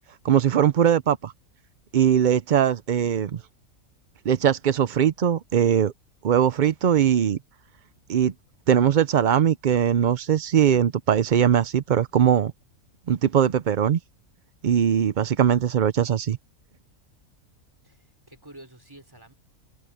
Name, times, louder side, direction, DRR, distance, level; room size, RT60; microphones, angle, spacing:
voice 1, 0.2-1.3 1.9-3.4 4.2-5.9 6.2-7.4 8.1-8.3 8.7-12.5 13.1-14.0 14.6-16.4, right 9 dB, 65° right, 0.4 m, -20 dB
voice 2, 17.8-19.3, right 1 dB, 15° right, 4.1 m, -49 dB
open air
omnidirectional pair, 1.5 m